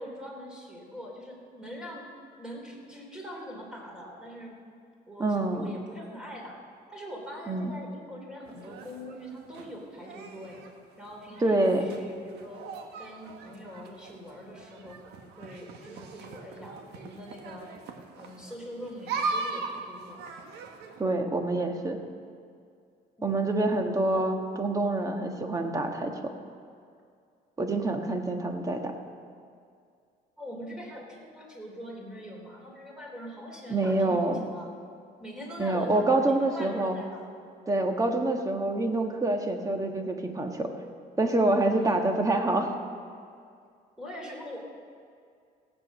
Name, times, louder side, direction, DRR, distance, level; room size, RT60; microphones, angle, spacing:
voice 1, 0.0-2.1 2.4-4.6 5.1-6.6 6.9-10.6 11.0-12.6 13.0-15.0 15.4-17.7 18.2-20.2 30.4-34.7 35.2-37.3 41.7-42.1 44.0-44.6, equal, 5° right, -1 dB, 3.6 m, -43 dB
voice 2, 5.2-5.6 7.5-7.7 11.4-11.8 21.0-22.0 23.2-26.1 27.6-28.9 33.7-34.4 35.6-36.9 37.7-40.7 41.2-42.7, right 2 dB, 20° right, 4 dB, 1.5 m, -26 dB
sound 1, 8.5-21.0, right 4 dB, 80° right, 1.3 m, -40 dB
16.5 x 8.7 x 6.3 m, 2.3 s
cardioid pair, 110°, 17 cm